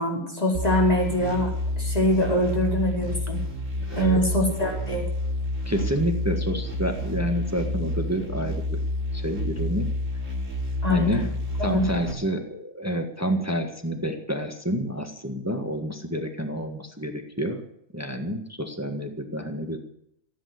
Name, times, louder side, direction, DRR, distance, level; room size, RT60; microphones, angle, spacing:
voice 1, 0.0-1.5 1.8-3.4 3.9-5.1 10.8-11.2 11.6-11.8, left 1 dB, 30° left, -2 dB, 4.8 m, -24 dB
sound 1, 0.5-12.1, left 1 dB, 70° right, 3.5 m, -29 dB
voice 2, 3.9-4.2 5.6-8.8 9.1-9.9 10.9-11.3 11.6-17.6 17.9-19.8, equal, 10° right, 5 dB, 1.6 m, -28 dB
15.5 x 9.1 x 9.7 m, 0.72 s
omnidirectional pair, 1.3 m